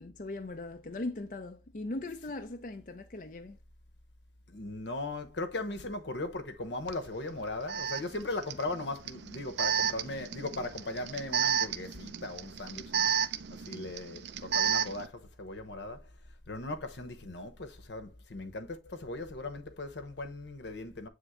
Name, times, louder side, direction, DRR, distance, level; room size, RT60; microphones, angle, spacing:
voice 1, 0.0-3.6, left 2 dB, 45° left, 0.6 m, -39 dB
voice 2, 4.5-13.1 13.5-16.0 16.5-21.1, left 2 dB, 80° left, 1.0 m, -38 dB
Alarm, 6.9-7.0 7.7-15.1, right 7 dB, 80° right, 0.5 m, -32 dB
8.0 x 3.6 x 3.6 m
head